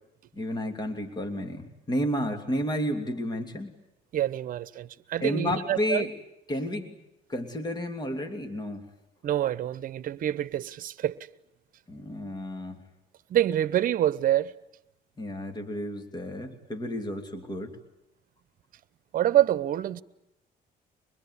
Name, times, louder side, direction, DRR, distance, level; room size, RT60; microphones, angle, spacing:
voice 1, 0.3-3.7 5.2-6.1 6.5-6.9 7.3-8.9 11.9-12.8 15.2-17.8, equal, 25° left, 2.9 m, -31 dB
voice 2, 4.1-6.1 9.2-11.2 13.3-14.5 19.1-20.0, right 12 dB, 55° right, 1.0 m, -26 dB
25.0 x 21.0 x 9.7 m
cardioid pair, 110°, 17 cm